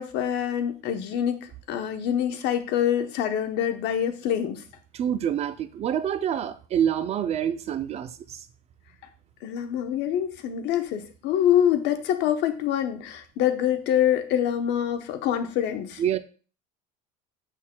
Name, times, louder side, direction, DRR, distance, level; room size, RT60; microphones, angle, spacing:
voice 1, 0.0-4.6 9.4-16.0, left 10 dB, 60° left, 0.9 m, -25 dB
voice 2, 4.9-8.5 16.0-16.2, right 9 dB, 30° right, 0.4 m, -27 dB
7.2 x 6.3 x 2.2 m
cardioid pair, 135°, 20 cm